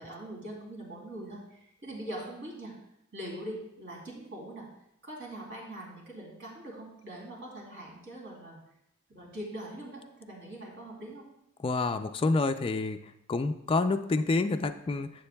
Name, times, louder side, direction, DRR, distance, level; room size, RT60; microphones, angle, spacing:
voice 1, 0.0-2.7 3.1-4.7 5.0-8.6 9.1-11.2, right 1 dB, 60° right, -2 dB, 2.9 m, -42 dB
voice 2, 11.6-13.0 13.3-15.3, left 3 dB, 25° left, 7 dB, 0.3 m, -28 dB
11.5 x 7.7 x 2.2 m, 0.82 s
head